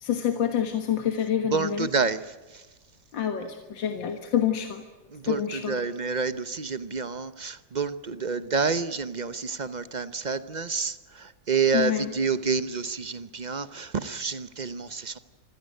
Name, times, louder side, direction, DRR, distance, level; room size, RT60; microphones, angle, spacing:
voice 1, 0.0-1.9 3.1-4.8 5.3-5.8 11.7-12.1, left 9 dB, 85° left, 6 dB, 2.2 m, -27 dB
voice 2, 1.5-2.2 5.2-5.4 5.7-11.0 11.5-15.2, right 5 dB, 50° right, 13 dB, 0.5 m, -28 dB
26.5 x 16.5 x 9.2 m, 1.2 s
omnidirectional pair, 2.0 m